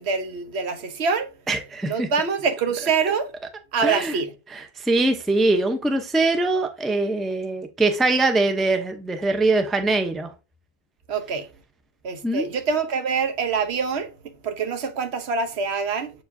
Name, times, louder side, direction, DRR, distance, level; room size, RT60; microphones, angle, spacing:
voice 1, 0.0-1.3 1.9-3.3 3.7-4.3 11.1-11.5 12.0-16.1, right 5 dB, 70° right, 1.2 m, -25 dB
voice 2, 1.5-2.1 3.8-4.2 4.5-10.3 12.2-12.5, right 2 dB, ahead, 0.6 m, -22 dB
7.7 x 4.8 x 2.6 m
omnidirectional pair, 1.2 m